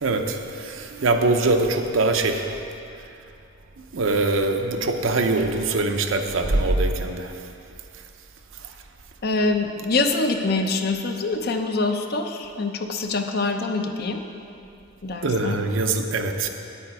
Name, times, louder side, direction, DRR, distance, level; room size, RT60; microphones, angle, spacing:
voice 1, 0.0-2.5 3.9-7.3 15.2-16.5, right 2 dB, 75° right, 5 dB, 0.7 m, -23 dB
voice 2, 9.2-14.2 15.0-15.6, left 3 dB, 50° left, 5 dB, 0.6 m, -25 dB
9.4 x 8.5 x 4.7 m, 2.6 s
head